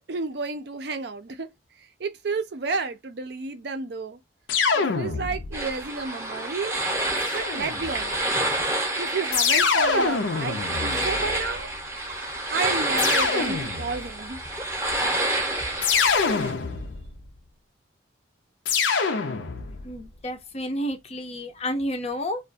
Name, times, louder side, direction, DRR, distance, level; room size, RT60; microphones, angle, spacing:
voice 1, 0.0-1.5 2.0-4.2 4.7-6.8 7.3-8.1 9.0-11.7 12.5-14.4, right 4 dB, 60° right, 0.5 m, -31 dB
sound 1, 4.5-5.7 7.2-8.1 9.3-11.6 13.0-14.1 15.8-17.2 18.7-19.9, left 5 dB, 85° left, 0.5 m, -25 dB
sound 2, 5.5-16.5, right 1 dB, 15° right, 0.7 m, -28 dB
voice 2, 19.8-22.4, equal, 35° left, 0.5 m, -30 dB
2.3 x 2.2 x 2.5 m
head